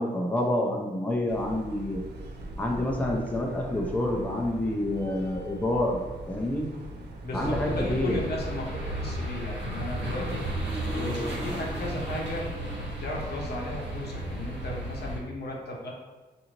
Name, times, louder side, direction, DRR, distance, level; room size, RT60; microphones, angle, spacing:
voice 1, 0.0-2.0 2.6-6.0 6.3-6.7 7.3-8.2, left 1 dB, 10° left, -1 dB, 0.5 m, -28 dB
sound 1, 1.3-8.3, right 1 dB, 70° right, 0.4 m, -41 dB
voice 2, 7.2-10.4 10.9-12.5 13.0-15.9, left 1 dB, 65° left, -2 dB, 0.7 m, -35 dB
sound 2, 7.4-15.2, right 1 dB, 85° right, 1.2 m, -33 dB
2.6 x 2.5 x 2.9 m, 1.2 s
cardioid pair, 60°, 18 cm